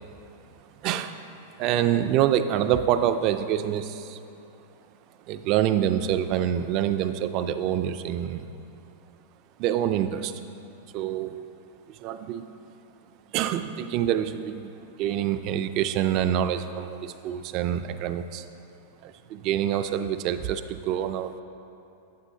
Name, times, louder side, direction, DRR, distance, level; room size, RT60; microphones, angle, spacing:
voice 1, 0.8-1.2 1.6-4.2 5.3-8.5 9.6-10.3 10.9-11.4 12.0-12.5 13.3-14.7 15.0-18.5 19.0-21.4, right 10 dB, 40° right, 10 dB, 0.3 m, -26 dB
8.8 x 7.4 x 2.7 m, 2.8 s
supercardioid pair, 150°, 0 cm